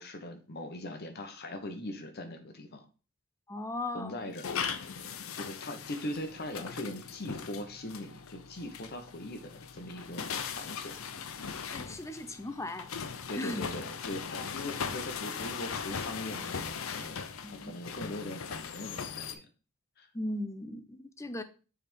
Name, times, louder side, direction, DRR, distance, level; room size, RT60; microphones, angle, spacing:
voice 1, 0.0-2.8 3.9-4.5 5.3-11.3 13.3-17.2 17.5-19.5 20.0-20.1, left 1 dB, 50° left, 1.1 m, -41 dB
voice 2, 3.5-4.3 11.7-12.9 13.4-13.7 17.4-17.7 20.1-21.4, left 1 dB, 15° left, 0.5 m, -37 dB
sound 1, 4.3-19.3, left 6 dB, 70° left, 0.7 m, -39 dB
6.9 x 3.6 x 5.2 m
head